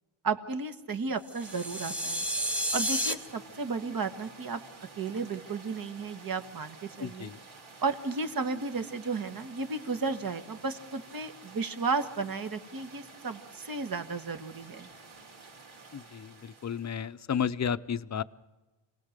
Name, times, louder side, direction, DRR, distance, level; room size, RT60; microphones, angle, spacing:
voice 1, 0.2-2.2 2.7-4.6 5.0-7.3 7.8-14.9, right 4 dB, 45° right, 8 dB, 1.6 m, -33 dB
sound 1, 1.3-3.1, equal, 5° right, 1.4 m, -31 dB
sound 2, 1.4-17.1, right 4 dB, 75° right, 4.0 m, -51 dB
voice 2, 7.0-7.4 15.9-18.2, left 7 dB, 35° left, 13 dB, 0.6 m, -32 dB
28.5 x 19.0 x 6.7 m, 1.1 s
wide cardioid pair, 150°, 47 cm